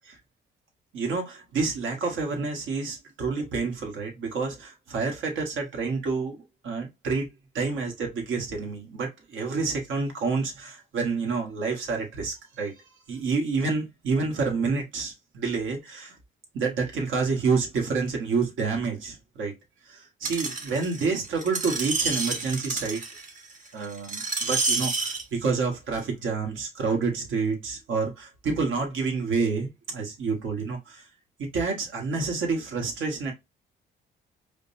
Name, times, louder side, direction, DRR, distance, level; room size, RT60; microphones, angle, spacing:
voice 1, 0.9-6.4 6.6-7.3 7.5-12.7 13.1-16.1 16.5-19.5 19.9-23.0 23.7-31.0 31.4-33.3, right 4 dB, 75° right, 1.4 m, -28 dB
Screech, 20.2-25.2 25.9-26.0, right 3 dB, 40° right, 1.1 m, -29 dB
5.0 x 2.2 x 2.7 m
cardioid pair, 90°, 20 cm